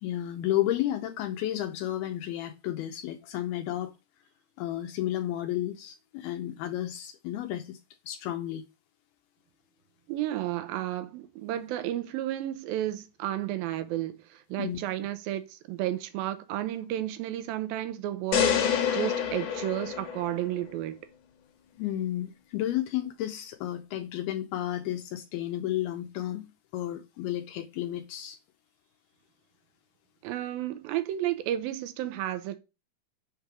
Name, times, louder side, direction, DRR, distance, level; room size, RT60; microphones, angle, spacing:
voice 1, 0.0-3.9 4.6-7.8 8.1-8.6 14.6-14.8 21.8-28.4, left 13 dB, 80° left, 2.6 m, -32 dB
voice 2, 10.1-18.7 18.9-21.0 30.2-32.6, right 13 dB, 75° right, 2.3 m, -32 dB
sound 1, 18.3-20.6, left 8 dB, 55° left, 2.7 m, -27 dB
6.6 x 5.1 x 6.1 m
omnidirectional pair, 4.7 m